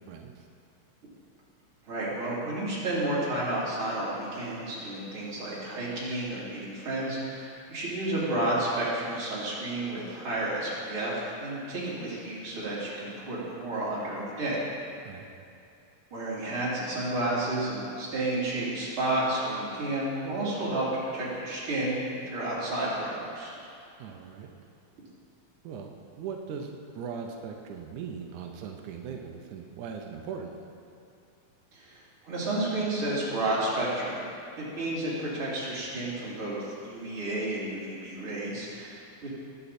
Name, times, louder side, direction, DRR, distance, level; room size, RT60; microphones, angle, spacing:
voice 1, 0.1-0.4 15.0-15.3 24.0-24.5 25.6-25.9 26.2-26.7 26.9-30.5, right 6 dB, 85° right, 2 dB, 1.7 m, -39 dB
voice 2, 1.9-14.6 16.1-20.9 21.1-23.5 31.7-34.2 34.6-39.3, right 1 dB, 35° right, -8 dB, 3.7 m, -31 dB
19.0 x 8.1 x 4.3 m, 2.5 s
omnidirectional pair, 4.5 m